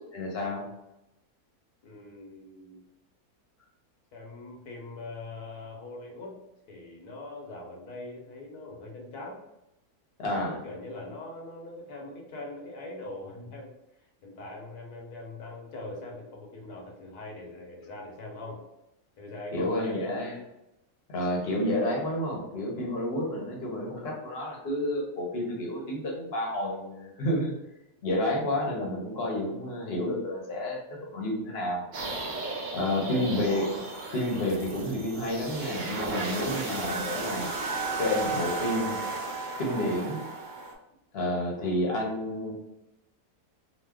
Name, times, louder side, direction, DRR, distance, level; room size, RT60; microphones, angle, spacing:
voice 1, 0.1-0.6 10.2-10.6 19.5-20.4 21.1-27.5 28.0-31.8 32.7-33.8 34.1-37.5 38.0-39.0 39.6-40.3 41.1-42.5, left 1 dB, 50° left, -1 dB, 0.8 m, -30 dB
voice 2, 1.8-2.8 4.1-6.4 6.7-9.4 10.3-13.7 14.0-18.6 19.2-20.2 22.7-22.9 32.8-33.0 36.2-36.5, left 2 dB, 85° left, 0 dB, 1.2 m, -42 dB
sound 1, 31.9-40.7, right 3 dB, 70° right, 0.4 m, -34 dB
3.0 x 2.0 x 3.4 m, 0.89 s
omnidirectional pair, 1.6 m